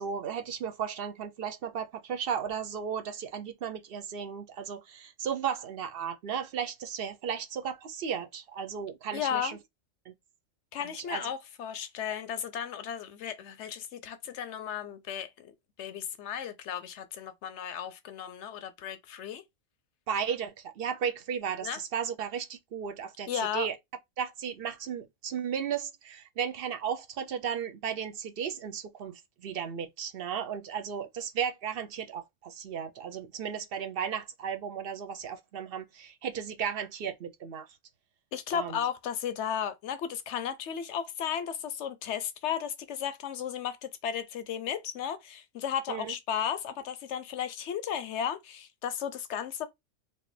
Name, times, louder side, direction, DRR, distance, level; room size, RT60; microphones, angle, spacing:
voice 1, 0.0-9.6 10.1-10.2 11.1-11.2 20.1-23.8 24.2-29.1 29.4-37.7 38.5-38.8 45.9-46.1, right 7 dB, 55° right, 0.7 m, -35 dB
voice 2, 9.1-9.6 10.7-15.5 15.8-19.4 21.6-21.8 23.3-23.7 38.3-49.7, left 8 dB, 70° left, 0.8 m, -34 dB
4.3 x 2.5 x 3.2 m
omnidirectional pair, 1.3 m